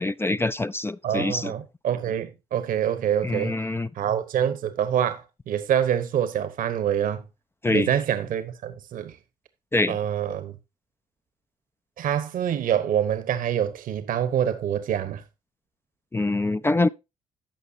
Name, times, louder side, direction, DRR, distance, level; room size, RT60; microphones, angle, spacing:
voice 1, 0.0-1.5 3.2-3.9 7.6-7.9 9.7-10.0 16.1-16.9, left 2 dB, 15° left, 0.4 m, -24 dB
voice 2, 1.0-3.6 4.0-7.2 7.7-9.1 9.9-10.5 12.0-15.2, right 9 dB, 65° right, 1.0 m, -26 dB
14.5 x 5.5 x 2.7 m
hypercardioid pair, 50°, 15 cm